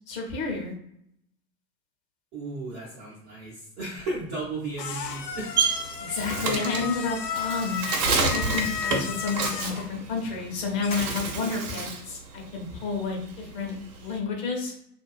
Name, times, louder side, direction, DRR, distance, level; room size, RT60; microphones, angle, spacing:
voice 1, 0.1-0.7 6.0-7.9 8.3-13.7 14.0-14.7, left 4 dB, 40° left, 1 dB, 0.9 m, -30 dB
voice 2, 2.3-5.5, right 2 dB, 20° right, -8 dB, 0.4 m, -35 dB
sound 1, 4.0-11.3, left 8 dB, 75° left, 0.6 m, -35 dB
Bird, 5.0-10.5 10.8-12.1 12.4-14.2, right 4 dB, 65° right, 0.8 m, -29 dB
2.4 x 2.2 x 2.3 m, 0.73 s
figure-of-eight pair, 90°, 50 cm